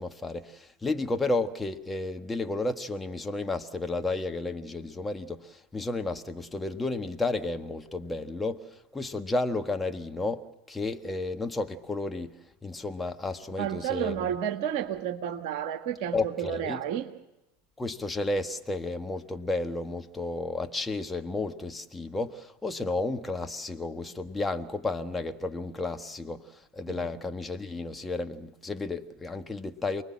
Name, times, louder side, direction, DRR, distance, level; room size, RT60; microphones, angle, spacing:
voice 1, 0.0-12.4 12.6-14.2 16.1-16.8 17.8-30.0, left 2 dB, 15° left, 1.6 m, -32 dB
voice 2, 13.6-17.1 26.9-27.0, right 9 dB, 55° right, 1.5 m, -31 dB
29.0 x 20.0 x 7.5 m
hypercardioid pair, 80°, 0 cm